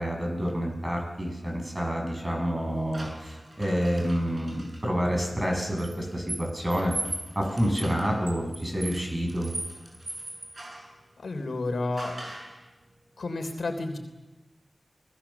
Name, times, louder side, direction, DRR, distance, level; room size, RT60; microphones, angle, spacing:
voice 1, 0.0-7.0 7.3-9.5, equal, 20° right, 1 dB, 8.0 m, -28 dB
sound 1, 2.9-4.8 5.8-10.9 12.0-12.6, right 2 dB, 45° right, 7.9 m, -39 dB
voice 2, 11.2-12.2 13.2-14.0, left 2 dB, 80° left, 6 dB, 3.5 m, -31 dB
29.0 x 19.5 x 7.2 m, 1.1 s
wide cardioid pair, 75°, 0 cm